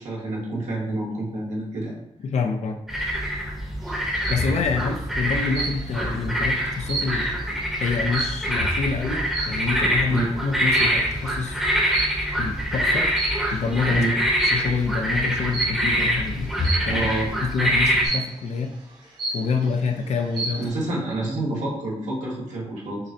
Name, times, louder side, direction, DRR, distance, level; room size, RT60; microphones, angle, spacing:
voice 1, 0.0-2.0 10.1-10.2 13.9-14.1 16.9-17.3 20.6-23.0, right 2 dB, 90° right, -5 dB, 1.5 m, -28 dB
voice 2, 2.2-2.8 4.3-7.3 7.8-11.6 12.4-13.1 13.5-14.0 14.4-16.5 16.9-17.1 17.4-18.7 19.3-20.7, left 5 dB, 70° left, 5 dB, 0.5 m, -27 dB
sound 1, 2.9-18.1, equal, ahead, 0.9 m, -25 dB
sound 2, 3.9-4.5 5.5-6.1 6.5-8.7 9.3-9.7 10.7-11.1 11.9-12.5 13.0-13.7 14.4-14.8 15.5-15.9 16.6-17.1 18.0-18.5 18.9-19.0 19.2-19.8 20.2-20.7, right 3 dB, 40° right, 1.0 m, -30 dB
6.4 x 2.2 x 2.7 m, 0.85 s
wide cardioid pair, 170°, 12 cm